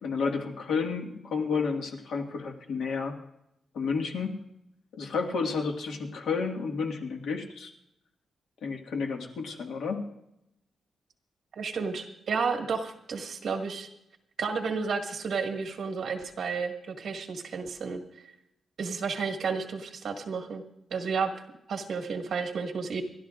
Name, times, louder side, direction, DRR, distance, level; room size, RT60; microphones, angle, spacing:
voice 1, 0.0-3.2 3.7-4.4 4.9-7.7 8.6-10.1, left 5 dB, 90° left, 2 dB, 1.9 m, -31 dB
voice 2, 11.6-13.9 14.4-18.0 18.8-20.6 20.9-21.3 21.7-23.0, right 5 dB, 55° right, 2 dB, 1.9 m, -31 dB
29.0 x 13.0 x 2.5 m, 0.82 s
wide cardioid pair, 155°, 0 cm